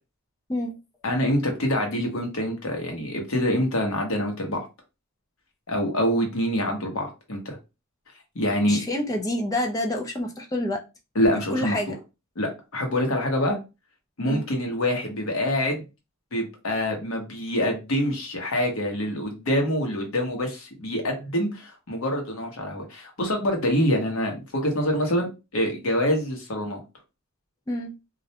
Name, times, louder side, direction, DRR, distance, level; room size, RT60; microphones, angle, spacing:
voice 1, 1.0-4.7 5.7-7.6 8.3-8.8 11.1-11.8 12.4-13.6 14.2-15.9 16.3-26.8, equal, 70° left, 0.9 m, -25 dB
voice 2, 8.6-10.8 11.2-11.9 14.2-14.4 27.7-27.9, left 1 dB, 15° left, 0.3 m, -28 dB
2.4 x 2.1 x 2.8 m
head